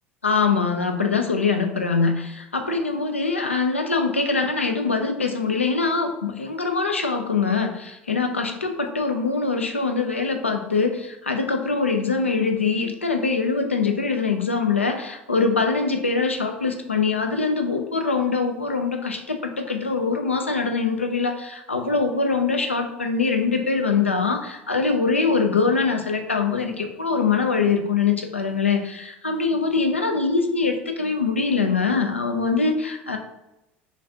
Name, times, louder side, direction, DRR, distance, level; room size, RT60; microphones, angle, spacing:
voice 1, 0.2-33.2, left 4 dB, 85° left, 4 dB, 0.4 m, -23 dB
5.1 x 2.4 x 2.7 m, 0.93 s
figure-of-eight pair, 70°, 6 cm